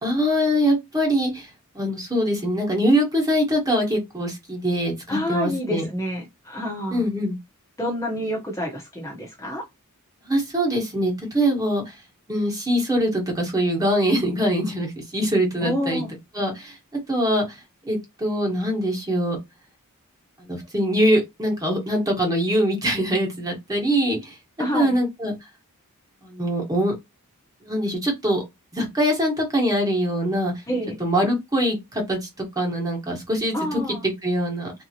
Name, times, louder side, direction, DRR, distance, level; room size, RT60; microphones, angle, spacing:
voice 1, 0.0-1.5 1.7-5.8 6.9-7.4 10.3-11.9 12.3-16.0 16.3-16.7 17.1-17.4 17.8-19.4 20.4-24.3 24.7-25.3 26.2-26.9 27.6-28.4 28.7-30.5 31.0-34.7, equal, 15° right, 1.3 m, -23 dB
voice 2, 5.1-7.0 7.8-9.6 15.6-16.1 24.6-25.0 30.7-31.0 33.5-34.1, equal, 15° left, 0.9 m, -28 dB
3.4 x 2.8 x 2.9 m
head